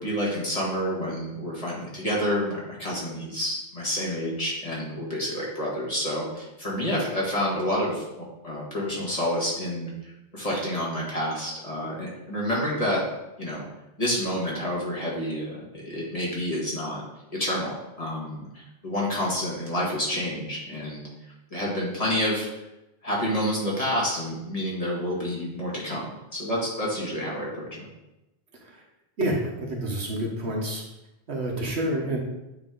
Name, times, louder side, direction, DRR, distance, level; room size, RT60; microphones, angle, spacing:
voice 1, 0.0-8.0 8.4-13.0 13.4-13.6 14.0-17.0 17.3-21.1 21.5-22.5 23.0-27.9, equal, 35° left, -6 dB, 1.8 m, -29 dB
voice 2, 29.2-30.8 31.3-32.2, right 1 dB, 75° right, -1 dB, 1.4 m, -28 dB
8.8 x 3.1 x 3.8 m, 0.95 s
omnidirectional pair, 1.1 m